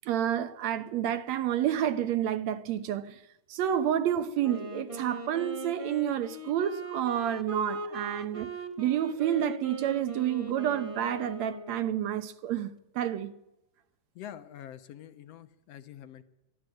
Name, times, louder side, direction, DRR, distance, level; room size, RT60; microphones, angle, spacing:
voice 1, 0.1-3.2 3.5-8.5 8.8-13.3, right 10 dB, 70° right, 2.1 m, -29 dB
Wind instrument woodwind instrument, 4.4-12.2, right 1 dB, 30° right, 0.6 m, -40 dB
voice 2, 14.2-16.2, left 10 dB, 65° left, 2.0 m, -46 dB
22.5 x 12.5 x 9.3 m
omnidirectional pair, 3.3 m